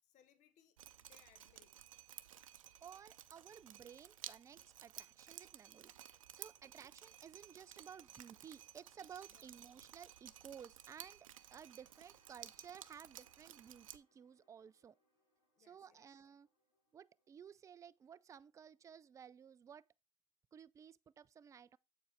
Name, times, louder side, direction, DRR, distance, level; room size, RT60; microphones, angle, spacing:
voice 1, 0.0-1.8 9.3-9.6 15.6-16.3, left 9 dB, 45° left, 1.0 m, -70 dB
Drip, 0.8-14.0, right 11 dB, 90° right, 0.5 m, -55 dB
voice 2, 2.8-5.9 6.3-15.0 15.6-16.5 16.9-19.9 20.5-21.8, right 8 dB, 20° right, 0.3 m, -56 dB
sound 1, 11.3-19.1, left 1 dB, 70° left, 5.4 m, -81 dB
7.6 x 4.6 x 4.4 m
hypercardioid pair, 90°, 17 cm